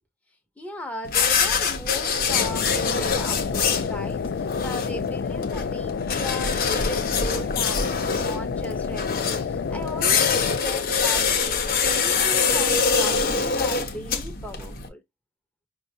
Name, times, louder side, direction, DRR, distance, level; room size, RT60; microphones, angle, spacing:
voice 1, 0.6-15.0, left 1 dB, 10° left, 0.9 m, -37 dB
sound 1, 1.0-14.9, left 5 dB, 55° left, 0.8 m, -25 dB
sound 2, 2.3-10.6, left 6 dB, 70° left, 0.3 m, -29 dB
5.3 x 2.3 x 2.7 m
head